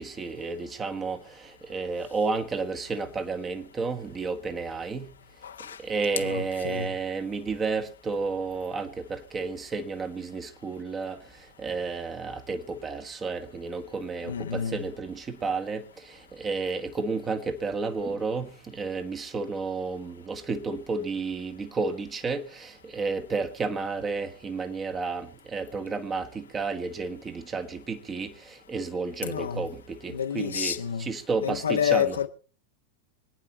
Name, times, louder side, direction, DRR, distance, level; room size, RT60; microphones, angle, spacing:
voice 1, 0.0-5.1 5.8-11.2 11.6-32.2, right 4 dB, 20° right, 1.7 m, -32 dB
voice 2, 5.4-5.8 6.2-6.9 14.3-14.8 29.2-29.6 30.1-31.1 31.4-32.3, left 8 dB, 70° left, 1.2 m, -29 dB
25.0 x 9.9 x 4.4 m
figure-of-eight pair, 90°, 0 cm